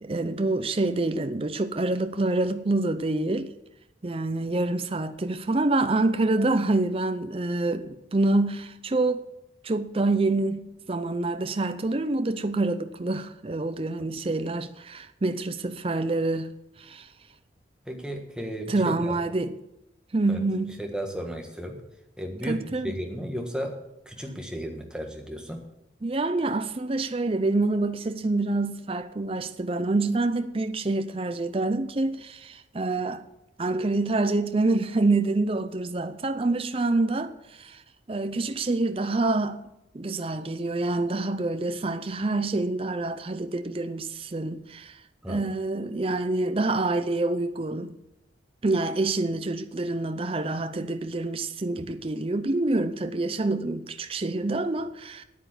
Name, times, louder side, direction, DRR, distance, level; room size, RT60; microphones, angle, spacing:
voice 1, 0.0-3.5 4.0-9.3 9.6-16.5 16.8-17.1 18.7-19.5 20.1-20.8 22.5-23.0 26.0-33.2 33.6-37.8 38.1-39.6 39.9-45.0 45.3-47.9 48.6-55.2, right 2 dB, 30° right, 0.5 m, -27 dB
voice 2, 17.9-19.2 20.3-20.4 20.8-21.8 22.2-23.7 24.0-25.6 45.2-45.4, equal, 5° right, 1.5 m, -34 dB
9.2 x 9.1 x 7.5 m
head